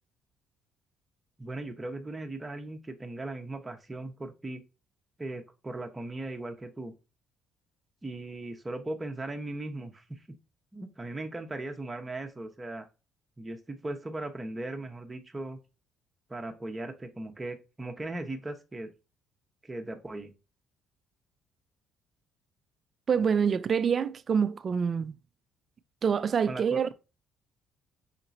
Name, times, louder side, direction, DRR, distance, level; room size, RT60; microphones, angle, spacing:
voice 1, 1.4-4.6 5.2-6.9 8.0-10.2 10.7-12.9 13.4-15.6 16.3-18.9 19.6-20.3 26.5-26.9, right 2 dB, 20° right, 1.0 m, -38 dB
voice 2, 23.1-25.1 26.0-26.9, right 6 dB, 45° right, 0.4 m, -26 dB
5.8 x 2.9 x 2.6 m
supercardioid pair, 70°, 0 cm